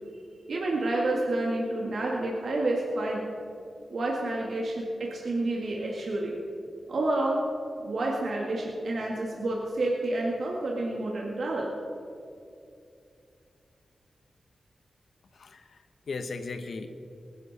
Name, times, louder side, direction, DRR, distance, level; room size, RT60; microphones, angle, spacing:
voice 1, 0.5-3.2 3.9-6.4 6.9-7.4 7.8-11.7, right 2 dB, 70° right, -2 dB, 2.1 m, -29 dB
voice 2, 15.3-16.9, left 4 dB, 75° left, 8 dB, 1.1 m, -37 dB
20.0 x 11.5 x 4.3 m, 2.6 s
cardioid pair, 75°, 0 cm